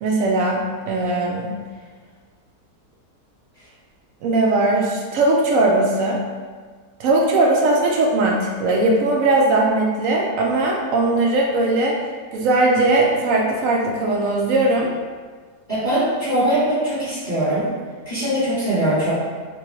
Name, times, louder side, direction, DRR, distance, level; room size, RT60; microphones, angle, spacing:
voice 1, 0.0-1.5 4.2-6.2 7.0-12.0 12.3-14.9, right 2 dB, 70° right, -1 dB, 0.8 m, -19 dB
voice 2, 15.7-17.6 18.0-19.1, right 1 dB, 30° right, -13 dB, 1.4 m, -21 dB
4.7 x 2.2 x 3.0 m, 1.5 s
omnidirectional pair, 1.8 m